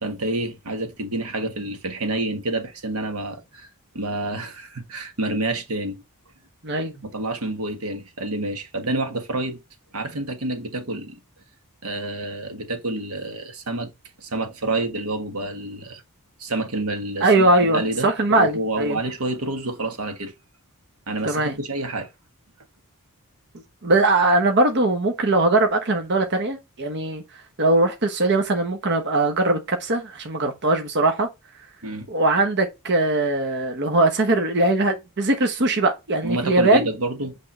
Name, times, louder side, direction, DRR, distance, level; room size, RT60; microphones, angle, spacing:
voice 1, 0.0-3.7 3.9-6.0 7.0-9.6 9.9-11.2 11.8-13.9 14.2-16.0 16.4-17.3 17.6-20.3 21.1-22.1 31.8-32.1 36.2-37.4, right 2 dB, 75° right, 1.5 m, -28 dB
voice 2, 17.2-19.0 21.2-21.6 23.8-27.2 27.6-31.3 32.1-36.9, right 2 dB, 50° right, 1.1 m, -20 dB
8.4 x 3.5 x 4.3 m
head